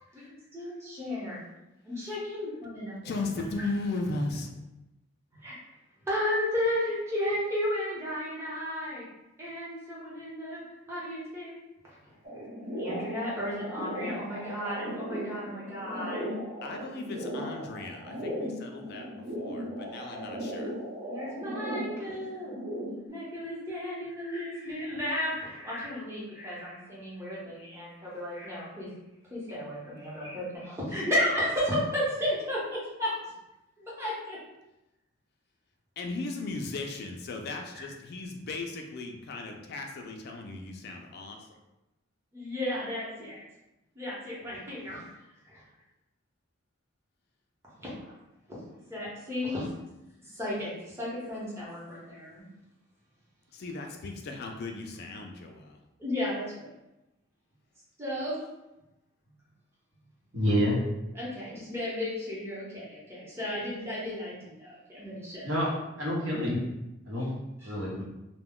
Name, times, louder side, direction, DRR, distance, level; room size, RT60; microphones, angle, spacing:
voice 1, 0.5-1.4 1.8-3.0 5.4-5.5 6.1-9.0 9.4-10.6 10.9-11.5 12.8-16.2 21.0-22.6 23.1-28.9 29.3-33.1 33.8-34.4 37.7-37.8 42.3-43.4 43.9-45.0 45.5-45.6 47.8-47.9 48.9-49.7 50.3-52.4 56.0-56.7 58.0-58.4 61.1-65.5 67.6-67.7, left 1 dB, 15° right, -7 dB, 0.9 m, -33 dB
voice 2, 3.0-4.5 16.6-20.7 36.0-41.5 53.5-55.8, left 3 dB, 50° left, 3 dB, 0.4 m, -37 dB
sound 1, 12.2-23.1, equal, 40° right, 0.8 m, -37 dB
voice 3, 60.3-60.8 65.4-65.7 66.0-66.6 67.1-67.3 67.6-68.0, equal, 75° right, -5 dB, 1.0 m, -27 dB
2.2 x 2.1 x 3.6 m, 0.93 s
head